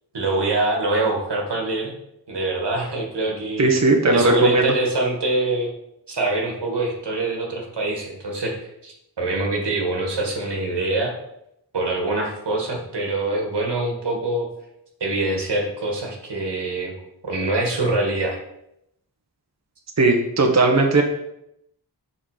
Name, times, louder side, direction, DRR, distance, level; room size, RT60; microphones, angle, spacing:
voice 1, 0.1-1.9 2.3-3.7 4.1-5.7 6.1-11.1 11.7-14.5 15.0-17.0 17.2-18.4, right 2 dB, 90° right, 0 dB, 1.7 m, -24 dB
voice 2, 3.6-4.7 20.0-21.0, right 2 dB, 40° right, 2 dB, 1.0 m, -17 dB
6.3 x 5.4 x 4.8 m, 0.80 s
wide cardioid pair, 80°, 40 cm